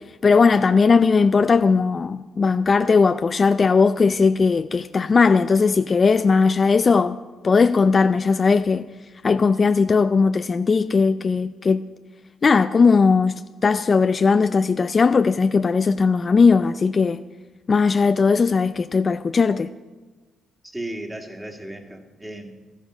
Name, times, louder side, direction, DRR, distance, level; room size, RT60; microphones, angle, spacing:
voice 1, 0.2-7.2 7.4-8.9 9.2-11.8 12.4-17.2 17.7-19.7, left 4 dB, 35° left, 0.4 m, -18 dB
voice 2, 20.6-22.6, right 1 dB, 10° right, 2.0 m, -35 dB
13.0 x 9.1 x 6.3 m
cardioid pair, 90°, 0 cm